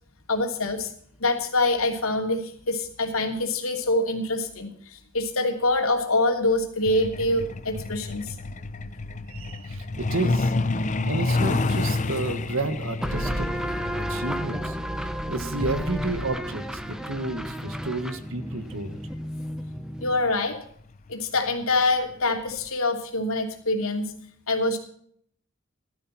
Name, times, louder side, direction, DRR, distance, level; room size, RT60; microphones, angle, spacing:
voice 1, 0.3-0.9 1.2-8.4 20.0-20.6 21.1-24.1 24.5-24.8, left 2 dB, 85° left, 3 dB, 3.0 m, -25 dB
Truck, 6.9-19.2 20.4-20.6 20.9-21.1 21.5-21.8 22.1-22.2 22.7-22.8, left 3 dB, 35° left, 0.8 m, -30 dB
voice 2, 9.3-10.5 11.0-13.5 13.9-19.0, right 2 dB, 70° right, 10 dB, 1.6 m, -31 dB
sound 1, 13.0-20.4, equal, 5° right, 1.0 m, -32 dB
16.0 x 12.5 x 4.3 m, 0.62 s
head